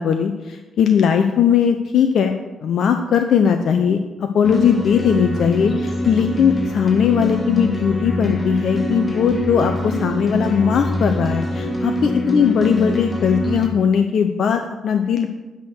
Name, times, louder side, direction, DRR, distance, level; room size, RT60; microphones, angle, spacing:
voice 1, 0.0-2.4 2.6-15.3, left 7 dB, 65° left, 6 dB, 0.7 m, -18 dB
sound 1, 4.4-13.7, equal, 30° left, 2.0 m, -24 dB
10.5 x 6.1 x 6.5 m, 1.1 s
hypercardioid pair, 40°, 0 cm